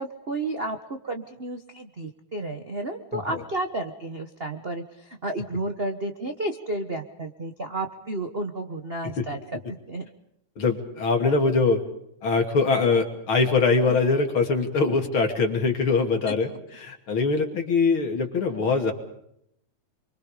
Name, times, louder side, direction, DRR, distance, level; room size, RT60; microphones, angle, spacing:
voice 1, 0.0-10.1 13.9-14.0 16.3-16.4, right 2 dB, 40° right, 6 dB, 0.8 m, -32 dB
voice 2, 10.6-11.8 12.2-18.9, left 4 dB, 45° left, 4 dB, 3.2 m, -23 dB
28.5 x 24.0 x 5.1 m, 0.74 s
omnidirectional pair, 3.3 m